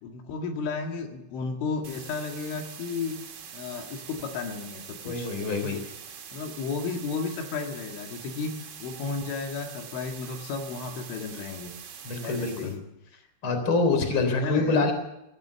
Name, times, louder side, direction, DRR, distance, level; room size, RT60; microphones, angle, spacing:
voice 1, 0.0-3.2 3.5-5.3 5.6-5.8 6.3-8.5 8.8-11.7 12.2-12.8 13.1-13.2 14.3-14.9, left 4 dB, 75° left, 3 dB, 4.2 m, -33 dB
sound 1, 1.8-12.8, right 7 dB, 50° right, 3.1 m, -44 dB
voice 2, 5.0-5.8 12.0-12.7 13.4-14.9, left 3 dB, 30° left, 6 dB, 3.9 m, -25 dB
24.5 x 15.5 x 7.0 m, 0.89 s
omnidirectional pair, 5.8 m